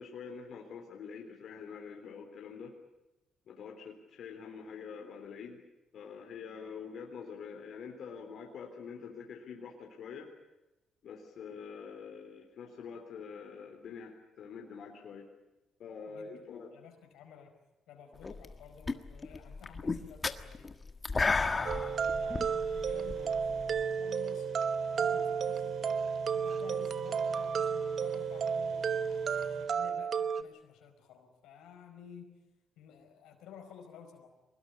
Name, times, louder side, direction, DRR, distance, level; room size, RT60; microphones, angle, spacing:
voice 1, 0.0-2.8 3.5-5.6 5.9-10.3 11.0-15.3 15.8-16.8, left 6 dB, 65° left, 2 dB, 3.7 m, -45 dB
voice 2, 16.1-17.6 17.9-20.8 21.2-24.5 24.8-26.0 26.3-32.4 32.8-34.4, left 7 dB, 90° left, 4 dB, 4.9 m, -53 dB
sound 1, 18.2-18.6 18.9-23.8, left 4 dB, 30° left, 1.5 m, -33 dB
sound 2, 21.5-29.6, right 4 dB, 75° right, 5.8 m, -49 dB
sound 3, 21.7-30.4, right 6 dB, 55° right, 1.1 m, -32 dB
24.0 x 20.0 x 9.8 m, 1.0 s
cardioid pair, 90°, 0 cm